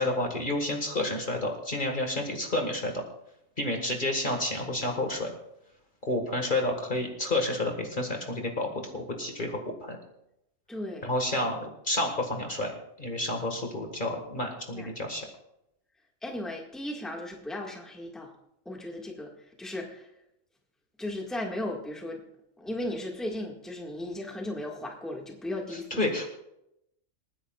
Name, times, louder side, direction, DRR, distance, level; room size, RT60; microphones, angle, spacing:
voice 1, 0.0-2.9 3.6-5.3 6.1-8.7 8.9-10.0 11.0-12.7 13.0-15.3 25.9-26.3, left 1 dB, 40° left, 2 dB, 1.8 m, -30 dB
voice 2, 10.7-11.1 14.7-14.9 16.2-18.3 18.7-19.3 19.6-20.1 21.0-22.2 22.6-26.1, left 1 dB, ahead, 0 dB, 1.7 m, -36 dB
27.5 x 10.0 x 2.4 m, 0.81 s
omnidirectional pair, 1.3 m